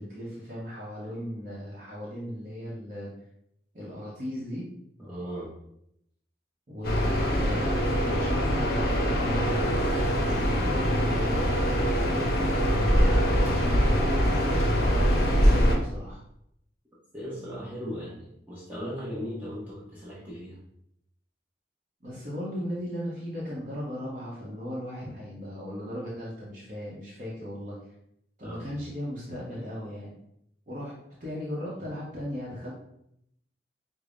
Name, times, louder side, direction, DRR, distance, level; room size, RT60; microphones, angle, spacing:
voice 1, 0.0-3.1 3.7-4.7 6.7-10.0 10.3-12.3 12.6-14.2 14.8-16.2 22.0-27.8 28.4-30.1 30.7-30.9 31.2-32.7, equal, 45° right, -7 dB, 0.8 m, -37 dB
voice 2, 5.0-5.5 17.1-20.6 28.4-28.8, equal, 10° right, -9 dB, 0.8 m, -37 dB
sound 1, 6.8-15.8, equal, 55° left, 0.6 m, -23 dB
5.0 x 2.0 x 2.5 m, 0.75 s
head